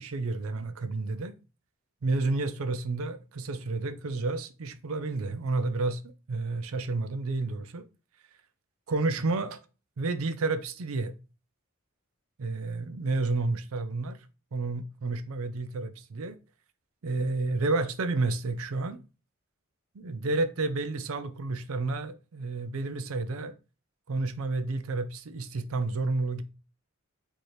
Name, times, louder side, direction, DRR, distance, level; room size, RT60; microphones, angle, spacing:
voice 1, 0.0-1.3 2.0-6.0 6.3-7.8 8.9-9.6 10.0-11.1 12.4-14.2 14.5-16.4 17.0-19.0 19.9-23.5 24.1-26.4, right 3 dB, 65° right, 0.5 m, -30 dB
4.4 x 2.8 x 3.2 m
head